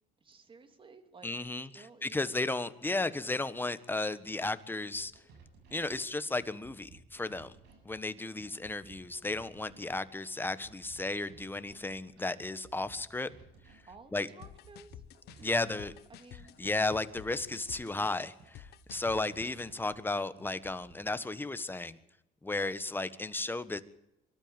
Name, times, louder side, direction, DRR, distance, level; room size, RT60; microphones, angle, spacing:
voice 1, 0.2-1.3 1.7-2.3 13.9-15.0 15.4-16.6, right 4 dB, 30° right, 8 dB, 3.1 m, -55 dB
voice 2, 1.2-5.1 5.7-7.6 7.8-13.3 13.7-13.8 14.1-14.3 15.4-15.9 16.6-22.0 22.4-23.8, left 2 dB, 10° left, 13 dB, 1.3 m, -34 dB
sound 1, 4.9-20.9, right 4 dB, 80° right, 7.7 m, -58 dB
sound 2, 14.4-19.7, left 14 dB, 75° left, 1.0 m, -51 dB
23.5 x 12.5 x 9.0 m, 0.87 s
cardioid pair, 110°, 17 cm